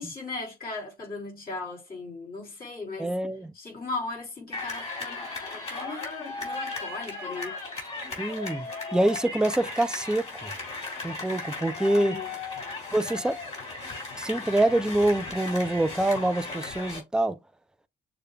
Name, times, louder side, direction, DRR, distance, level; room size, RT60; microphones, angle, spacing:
voice 1, 0.0-3.1 3.5-7.6 12.0-12.3, left 3 dB, 50° left, 3.3 m, -37 dB
voice 2, 3.0-3.5 8.2-10.5 11.0-12.2 12.9-13.4 14.2-17.4, right 1 dB, 5° right, 0.5 m, -25 dB
sound 1, 4.5-17.0, left 3 dB, 30° left, 3.0 m, -36 dB
6.7 x 2.3 x 3.3 m
cardioid pair, 90°, 20 cm